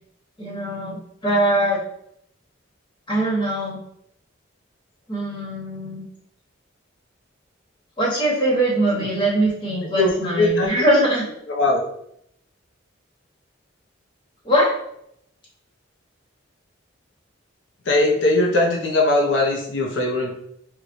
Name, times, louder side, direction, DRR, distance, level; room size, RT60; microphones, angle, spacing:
voice 1, 0.4-1.8 3.1-3.8 5.1-6.1 8.0-11.2 14.4-14.7, right 1 dB, 25° left, -5 dB, 1.1 m, -21 dB
voice 2, 10.0-10.7 11.5-11.8 17.8-20.3, left 2 dB, 70° left, 0 dB, 0.7 m, -20 dB
4.5 x 2.2 x 2.6 m, 0.73 s
head